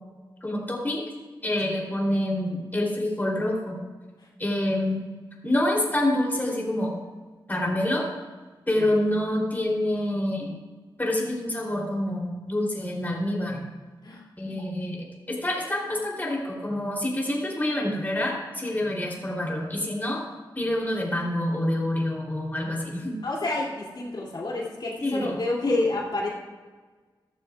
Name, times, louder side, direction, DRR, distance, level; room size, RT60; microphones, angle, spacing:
voice 1, 0.4-1.0 1.4-3.8 4.4-5.0 5.4-6.9 7.5-8.0 8.7-10.5 11.0-13.6 14.4-20.2 20.5-23.2 25.0-25.3, left 1 dB, 20° left, -2 dB, 3.1 m, -27 dB
voice 2, 23.2-26.3, left 2 dB, 65° left, -4 dB, 2.5 m, -28 dB
14.0 x 14.0 x 2.3 m, 1.4 s
wide cardioid pair, 110°, 8 cm